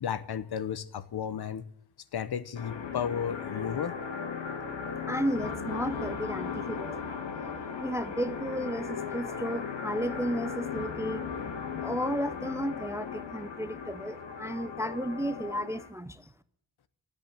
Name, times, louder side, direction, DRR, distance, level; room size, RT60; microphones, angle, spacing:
voice 1, 0.0-1.6 2.1-4.1, left 8 dB, 60° left, 0.9 m, -33 dB
sound 1, 2.6-15.9, left 6 dB, 85° left, 2.4 m, -37 dB
voice 2, 5.1-7.2 7.8-11.2 11.8-16.3, equal, 5° right, 0.4 m, -33 dB
13.0 x 8.2 x 9.0 m
wide cardioid pair, 145°, 43 cm